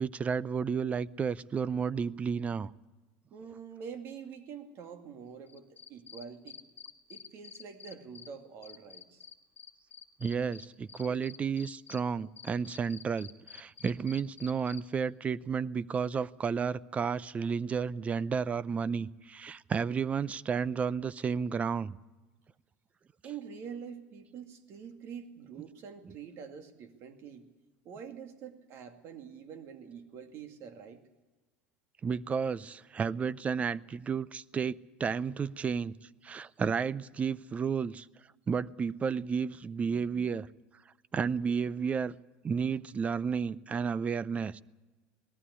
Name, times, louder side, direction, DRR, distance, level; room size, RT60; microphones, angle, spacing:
voice 1, 0.0-2.7 10.2-21.9 32.0-35.9 36.2-38.1 38.5-40.5 41.1-42.1 42.4-44.6, right 6 dB, 25° right, 21 dB, 0.5 m, -32 dB
voice 2, 3.3-6.6 7.1-9.3 23.2-27.5 27.8-31.0, right 7 dB, 50° right, 7 dB, 2.3 m, -46 dB
Cricket, 5.5-8.3 8.6-12.0 12.4-14.8, left 6 dB, 35° left, 1.8 m, -48 dB
19.5 x 14.0 x 9.8 m, 1.2 s
supercardioid pair, 110°, 5 cm